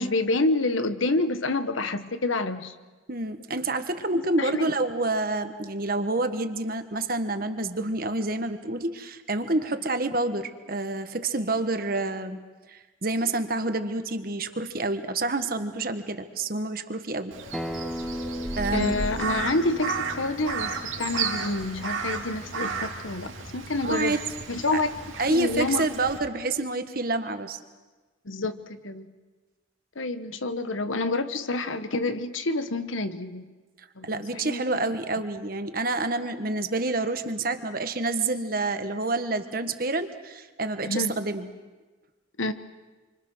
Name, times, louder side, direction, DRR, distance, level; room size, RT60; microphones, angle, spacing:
voice 1, 0.0-2.7 3.5-3.6 4.1-4.7 18.7-24.2 24.5-24.9 25.3-25.8 28.2-29.1 29.9-33.4 34.0-34.8 40.8-41.2 42.4-42.5, left 2 dB, 85° left, 10 dB, 1.3 m, -28 dB
voice 2, 3.1-12.4 12.7-17.3 18.6-19.0 23.8-24.2 24.7-24.8 25.2-27.6 34.0-41.5, right 2 dB, 45° right, 8 dB, 1.4 m, -28 dB
Crow, 17.3-26.2, right 5 dB, 90° right, 2.9 m, -33 dB
Acoustic guitar, 17.5-22.7, equal, ahead, 0.8 m, -37 dB
28.0 x 25.0 x 6.3 m, 1.3 s
head